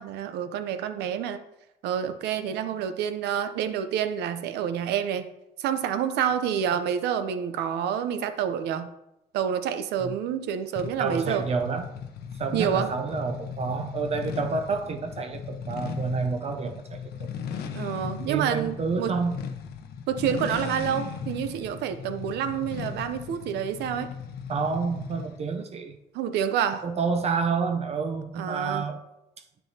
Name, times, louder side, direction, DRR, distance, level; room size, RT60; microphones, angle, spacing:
voice 1, 0.0-1.4 1.8-5.3 5.6-8.9 9.3-11.4 12.5-12.9 17.7-19.1 20.1-24.1 26.1-26.9 28.4-28.9, right 8 dB, 80° right, 10 dB, 0.7 m, -28 dB
sound 1, 10.8-25.4, left 7 dB, 70° left, 0.8 m, -37 dB
voice 2, 11.0-11.9 12.4-17.3 18.3-19.4 24.5-26.0 26.8-29.0, right 4 dB, 40° right, 5 dB, 0.7 m, -29 dB
9.5 x 6.9 x 2.8 m, 0.88 s
cardioid pair, 110°, 17 cm